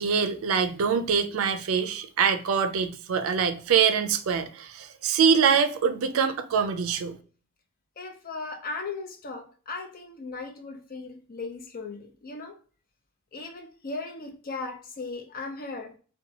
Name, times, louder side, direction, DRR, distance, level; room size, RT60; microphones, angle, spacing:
voice 1, 0.0-7.2, right 6 dB, 80° right, 0.4 m, -24 dB
voice 2, 8.0-12.6 13.3-15.9, left 3 dB, 45° left, 0.5 m, -37 dB
2.8 x 2.2 x 2.7 m
head